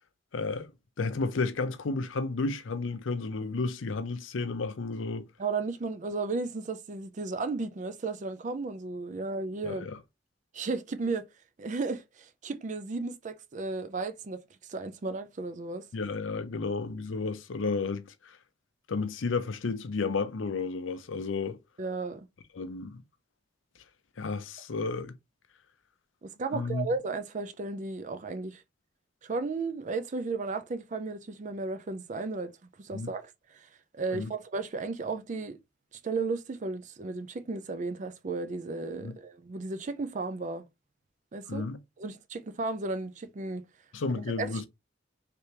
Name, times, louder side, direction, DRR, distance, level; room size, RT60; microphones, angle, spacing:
voice 1, 0.3-0.7 1.0-5.3 9.6-10.0 15.9-18.4 18.9-21.6 22.5-23.0 24.2-25.2 26.5-26.9 32.9-33.1 34.1-34.3 39.0-39.1 41.5-41.8 43.9-44.7, left 4 dB, 90° left, 0.6 m, -32 dB
voice 2, 5.4-9.9 10.5-11.3 11.6-14.4 14.7-15.9 21.8-22.3 26.2-28.6 29.2-33.7 33.9-35.6 36.0-40.7 41.3-41.7 42.0-43.6 44.4-44.7, right 3 dB, 40° right, 0.4 m, -34 dB
3.4 x 3.3 x 2.8 m
head